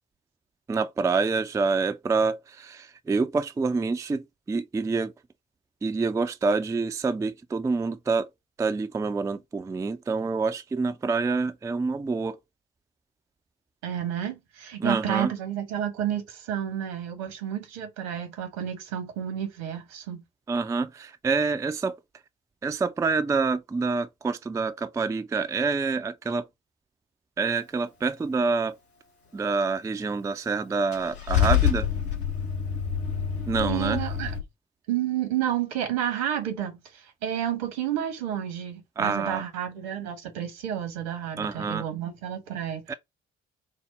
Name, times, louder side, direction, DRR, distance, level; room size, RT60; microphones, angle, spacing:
voice 1, 0.7-5.1 5.8-8.3 8.6-12.4 14.8-15.3 20.5-22.0 22.6-26.5 27.4-28.8 29.3-31.9 33.5-34.0 39.0-39.4 41.4-41.8 42.9-43.0, right 4 dB, 10° right, 0.4 m, -27 dB
voice 2, 13.8-20.2 33.6-34.3 34.9-42.8, right 10 dB, 70° right, 1.2 m, -31 dB
Car / Engine starting / Idling, 30.9-34.4, left 8 dB, 75° left, 1.3 m, -26 dB
5.3 x 2.0 x 4.0 m
figure-of-eight pair, 45°, 32 cm